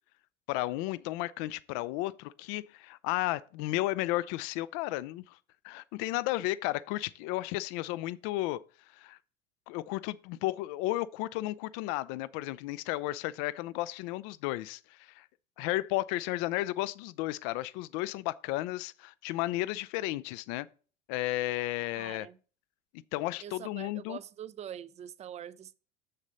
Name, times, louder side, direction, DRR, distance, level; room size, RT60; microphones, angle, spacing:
voice 1, 0.5-5.4 5.6-8.6 8.9-9.2 9.7-15.3 15.6-20.7 21.1-22.3 22.9-24.2, left 17 dB, 45° left, 0.5 m, -33 dB
voice 2, 22.0-22.4 23.4-25.7, right 9 dB, 20° right, 0.4 m, -44 dB
7.3 x 6.6 x 4.1 m
figure-of-eight pair, 80°, 35 cm